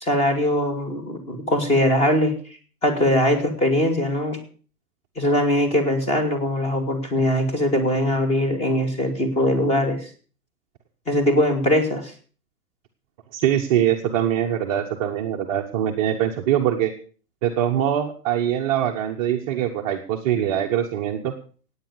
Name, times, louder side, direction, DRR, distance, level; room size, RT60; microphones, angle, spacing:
voice 1, 0.0-2.3 2.8-4.4 5.2-10.1 11.1-12.1, left 1 dB, 15° left, 6 dB, 2.6 m, -21 dB
voice 2, 13.3-16.9 17.4-21.3, right 10 dB, 25° right, 2 dB, 1.0 m, -23 dB
16.5 x 9.0 x 6.9 m, 0.42 s
figure-of-eight pair, 125°, 46 cm